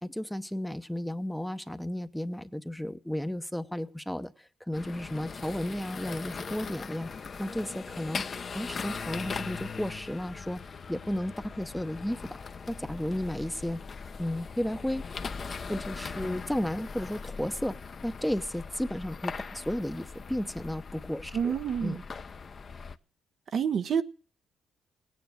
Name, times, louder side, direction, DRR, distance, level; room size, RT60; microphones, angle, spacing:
voice 1, 0.0-7.1 7.4-8.2 8.5-10.6 10.9-13.8 14.2-15.1 15.7-22.0, left 1 dB, 5° left, 10 dB, 0.8 m, -33 dB
sound 1, 4.7-23.0, left 5 dB, 40° left, 0.8 m, -40 dB
voice 2, 21.3-22.0 23.5-24.0, right 7 dB, 60° right, 9 dB, 0.8 m, -28 dB
17.5 x 9.4 x 6.4 m, 0.41 s
cardioid pair, 90°, 0 cm